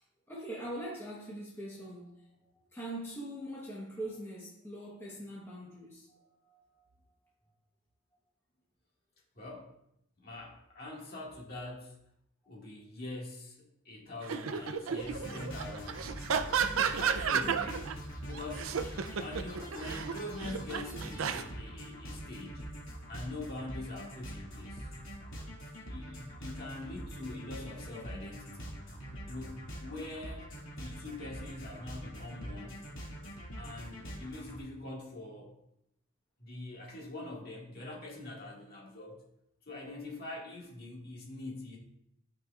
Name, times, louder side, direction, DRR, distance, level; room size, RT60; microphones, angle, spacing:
voice 1, 0.3-6.9 17.4-17.8, right 1 dB, 10° left, -5 dB, 1.1 m, -43 dB
voice 2, 9.4-9.7 10.2-12.0 12.5-16.2 17.0-17.8 18.3-18.7 19.2-22.6 23.1-24.9 25.8-28.7 29.3-30.5 30.8-32.8 33.6-35.6 36.4-39.2 39.7-41.8, left 2 dB, 50° left, -3 dB, 1.9 m, -44 dB
sound 1, 14.2-17.9 18.3-21.4, right 6 dB, 80° right, 0.5 m, -32 dB
sound 2, 15.0-34.6, equal, 75° left, 2.2 m, -44 dB
12.5 x 4.9 x 2.4 m, 0.77 s
head